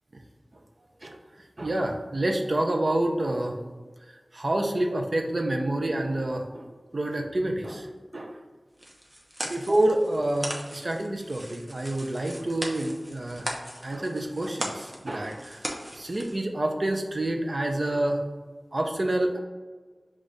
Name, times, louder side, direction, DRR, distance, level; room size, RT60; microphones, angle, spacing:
voice 1, 1.6-3.6 4.1-6.7 6.9-7.9 8.1-8.4 9.4-13.5 13.8-18.2 18.7-19.4, right 1 dB, 50° right, 3 dB, 0.6 m, -28 dB
sound 1, 8.8-16.4, equal, 20° right, 0.8 m, -38 dB
5.0 x 2.5 x 4.0 m, 1.4 s
wide cardioid pair, 60°, 0 cm